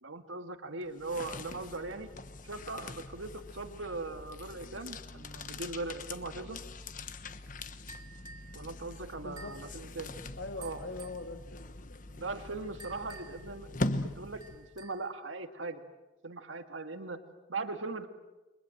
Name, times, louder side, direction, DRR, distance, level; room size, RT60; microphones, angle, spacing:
voice 1, 0.0-2.1 2.4-6.6 8.5-10.2 10.6-10.8 12.1-15.8 16.2-17.2 17.5-18.1, right 3 dB, 85° right, 7 dB, 1.8 m, -40 dB
sound 1, 0.8-14.9, left 2 dB, 45° left, 1.2 m, -42 dB
sound 2, 7.9-8.5 9.4-9.7 10.6-11.3 12.8-13.5 14.4-15.1, right 4 dB, 20° right, 3.0 m, -51 dB
voice 2, 9.2-9.8 10.4-12.0, left 2 dB, 70° left, 5 dB, 1.9 m, -43 dB
29.5 x 23.5 x 7.8 m, 1.1 s
head